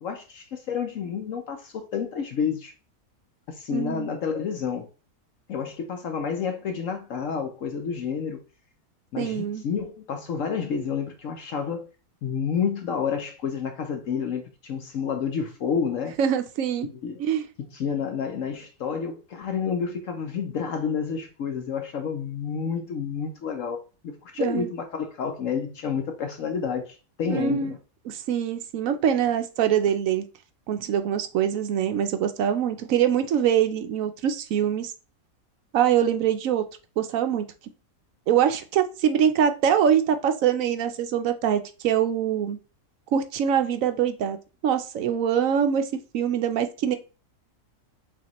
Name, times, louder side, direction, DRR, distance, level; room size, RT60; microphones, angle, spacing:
voice 1, 0.0-2.7 3.5-4.9 5.5-8.4 9.1-11.9 12.2-16.1 17.0-17.2 17.6-27.8, left 6 dB, 60° left, 1.0 m, -29 dB
voice 2, 3.7-4.1 9.2-9.6 16.2-16.9 17.2-17.5 24.4-24.7 27.3-27.8 28.1-30.3 30.7-34.9 35.7-36.7 37.0-37.5 38.3-42.6 43.1-44.4 44.6-45.9 46.1-46.9, right 9 dB, 70° right, 0.9 m, -24 dB
6.2 x 2.9 x 2.9 m
omnidirectional pair, 1.7 m